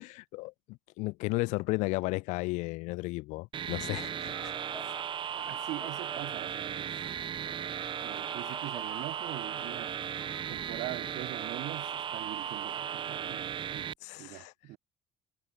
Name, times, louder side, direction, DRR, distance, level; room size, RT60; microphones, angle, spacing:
voice 1, 0.0-4.5 14.0-14.5, left 23 dB, 90° left, 0.8 m, -34 dB
sound 1, 3.5-13.9, right 8 dB, 45° right, 2.0 m, -36 dB
sound 2, 3.9-12.4, left 2 dB, 10° left, 4.5 m, -53 dB
voice 2, 5.3-6.9 8.0-9.9 10.5-13.9 14.2-14.8, right 19 dB, 80° right, 1.6 m, -42 dB
cardioid pair, 115°, 12 cm